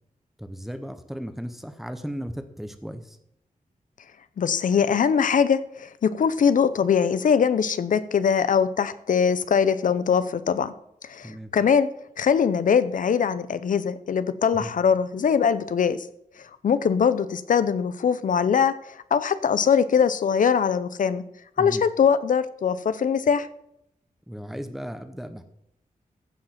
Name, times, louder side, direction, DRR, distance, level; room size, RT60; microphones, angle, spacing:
voice 1, 0.4-3.2 11.2-11.5 14.5-14.7 21.6-21.8 24.3-25.4, equal, ahead, 9 dB, 0.9 m, -35 dB
voice 2, 4.4-10.7 11.1-11.9 12.2-16.0 16.6-18.7 19.1-21.2 21.6-23.5, left 7 dB, 70° left, 14 dB, 0.7 m, -22 dB
15.0 x 5.0 x 5.8 m, 0.77 s
wide cardioid pair, 170°, 14 cm